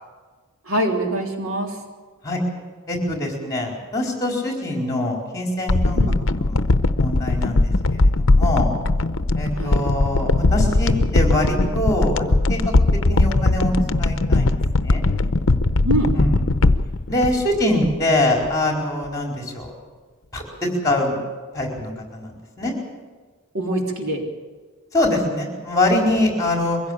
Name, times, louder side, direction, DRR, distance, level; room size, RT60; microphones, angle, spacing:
voice 1, 0.7-1.8 6.0-6.2 9.6-9.8 15.8-16.2 23.5-24.2, right 1 dB, 70° right, 2 dB, 3.6 m, -24 dB
voice 2, 2.9-6.0 6.4-6.6 7.0-7.7 8.3-8.7 9.3-12.6 13.1-13.7 14.0-14.5 14.8-15.0 16.1-16.4 17.1-19.7 20.3-21.2 21.5-22.3 22.6-22.7 24.9-26.8, left 1 dB, 15° left, 1 dB, 4.5 m, -23 dB
sound 1, 5.7-18.1 18.4-18.5, left 2 dB, 60° left, 0.8 m, -19 dB
23.5 x 16.5 x 8.6 m, 1.4 s
head